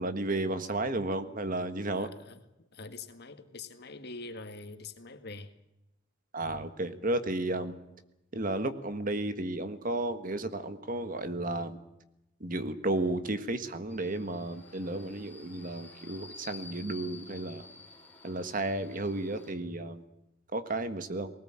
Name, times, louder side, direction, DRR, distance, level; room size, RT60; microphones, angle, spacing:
voice 1, 0.0-2.1 6.3-7.7 8.3-11.8 12.4-17.7 18.2-20.0 20.5-21.3, right 2 dB, 45° right, 10 dB, 1.6 m, -33 dB
voice 2, 1.9-5.5, left 3 dB, 55° left, 8 dB, 1.9 m, -45 dB
Subway metro underground, 13.9-19.5, left 3 dB, 10° left, 3.9 m, -51 dB
20.5 x 19.0 x 8.8 m, 0.89 s
head